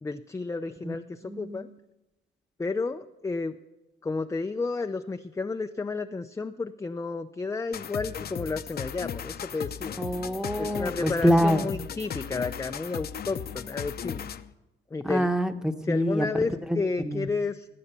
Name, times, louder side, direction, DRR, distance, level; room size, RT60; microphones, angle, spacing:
voice 1, 0.0-1.7 2.6-3.5 4.0-10.0 10.6-14.3 14.9-15.3 15.9-17.7, left 3 dB, 15° left, 7 dB, 0.5 m, -32 dB
voice 2, 1.2-1.7 10.0-11.7 15.0-17.3, equal, 5° right, 8 dB, 1.1 m, -26 dB
sound 1, 7.7-14.5, left 8 dB, 50° left, 0.8 m, -36 dB
19.0 x 8.6 x 6.9 m, 1.0 s
cardioid pair, 90°, 20 cm